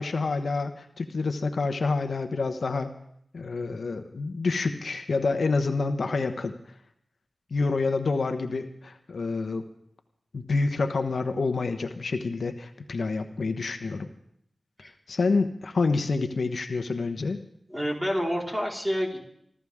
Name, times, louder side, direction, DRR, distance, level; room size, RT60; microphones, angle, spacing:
voice 1, 0.0-2.9 3.3-6.5 7.5-9.6 10.3-14.1 15.1-17.4, left 3 dB, 75° left, 7 dB, 1.1 m, -28 dB
voice 2, 17.7-19.2, equal, 10° right, -2 dB, 4.4 m, -28 dB
25.5 x 13.5 x 3.7 m, 0.70 s
cardioid pair, 55°, 0 cm